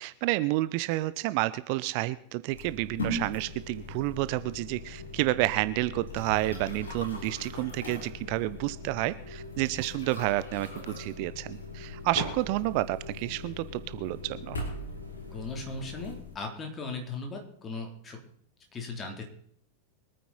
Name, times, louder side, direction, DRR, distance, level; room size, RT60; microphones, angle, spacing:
voice 1, 0.0-14.6, right 18 dB, 45° right, 16 dB, 0.6 m, -30 dB
sound 1, 2.5-16.3, left 2 dB, 70° left, 3.8 m, -41 dB
Rain, 3.0-16.2, equal, 85° right, 2.6 m, -46 dB
voice 2, 15.3-18.2 18.7-19.2, left 3 dB, 20° left, 2 dB, 3.8 m, -38 dB
24.0 x 9.3 x 4.4 m, 0.66 s
figure-of-eight pair, 90°, 0 cm